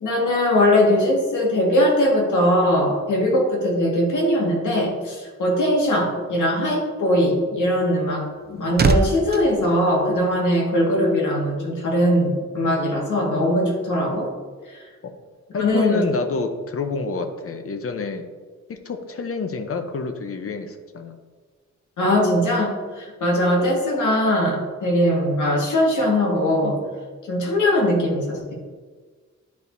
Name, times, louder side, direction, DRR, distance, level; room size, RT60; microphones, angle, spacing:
voice 1, 0.0-14.3 14.7-14.8 15.6-16.0 22.0-26.8 27.3-28.5, left 1 dB, 85° left, -2 dB, 1.8 m, -20 dB
sound 1, 8.0-10.7 11.0-11.3, right 4 dB, 35° right, 0.5 m, -25 dB
voice 2, 15.5-18.2 18.7-21.2, left 4 dB, 50° left, 7 dB, 0.8 m, -28 dB
10.5 x 4.7 x 2.7 m, 1.4 s
wide cardioid pair, 95°, 30 cm